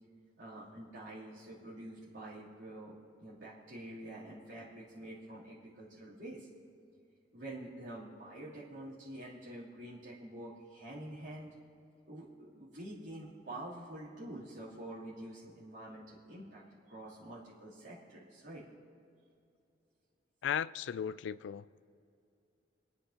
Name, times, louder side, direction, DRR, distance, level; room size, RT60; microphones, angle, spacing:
voice 1, 0.4-2.9 3.2-6.5 7.3-11.5 12.1-16.6 16.9-18.6, right 1 dB, 90° right, 3.0 m, -47 dB
voice 2, 20.4-21.7, left 8 dB, 85° left, 0.3 m, -36 dB
28.0 x 9.9 x 2.8 m
head